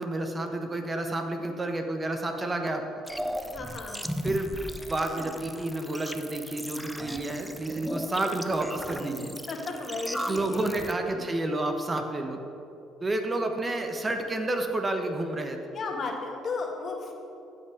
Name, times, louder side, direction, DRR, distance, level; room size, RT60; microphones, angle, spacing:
voice 1, 0.0-2.9 4.2-9.4 10.2-12.4 13.0-15.6, right 2 dB, 25° right, 4 dB, 1.2 m, -30 dB
sound 1, 3.1-10.9, equal, 5° right, 0.7 m, -37 dB
voice 2, 3.5-4.0 9.5-10.7 11.1-11.2 15.7-17.1, left 3 dB, 50° left, 2 dB, 1.7 m, -34 dB
15.5 x 5.8 x 5.1 m, 2.8 s
supercardioid pair, 70°, 0 cm